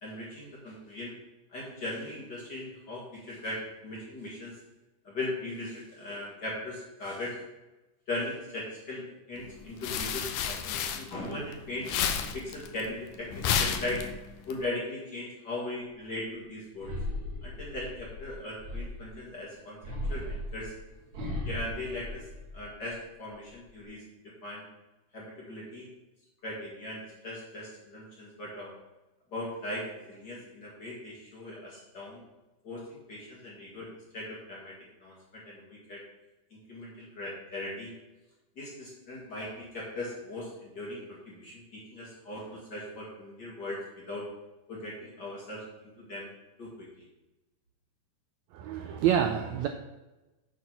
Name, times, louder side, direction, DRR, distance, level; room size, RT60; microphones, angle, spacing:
voice 1, 0.0-1.1 1.5-4.6 5.0-7.4 8.1-11.9 12.3-14.0 14.5-17.0 17.4-19.8 20.1-20.7 21.4-22.3 22.5-24.0 24.4-24.7 25.1-25.9 26.4-28.7 29.3-32.2 32.6-33.9 34.1-34.7 35.0-36.0 36.7-37.9 38.6-44.3 44.7-46.3 46.6-47.0, left 1 dB, 40° left, -5 dB, 2.0 m, -39 dB
sound 1, 9.5-11.5 11.8-14.5, left 7 dB, 75° left, 2.0 m, -31 dB
sound 2, 16.8-19.2 19.8-22.9 23.3-23.8, left 1 dB, 65° right, 2.6 m, -37 dB
voice 2, 48.5-49.7, right 9 dB, 85° right, 6 dB, 1.6 m, -27 dB
8.3 x 4.1 x 5.9 m, 1.1 s
omnidirectional pair, 3.7 m